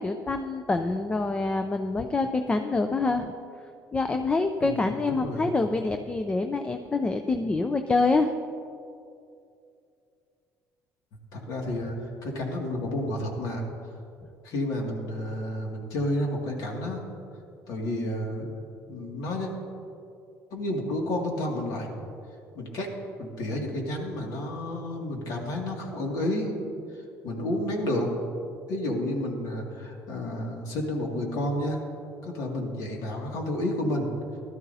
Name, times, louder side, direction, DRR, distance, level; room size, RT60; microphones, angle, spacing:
voice 1, 0.0-3.3 3.9-8.3, left 3 dB, 15° left, 7 dB, 0.4 m, -26 dB
voice 2, 4.6-5.5 11.3-13.7 14.4-17.0 17.7-18.5 18.9-19.5 20.5-21.9 22.5-22.9 23.2-26.5 26.9-28.1 28.7-31.8 32.2-34.1, left 1 dB, 65° left, 0 dB, 2.2 m, -31 dB
17.0 x 12.5 x 2.7 m, 2.5 s
cardioid pair, 130°, 6 cm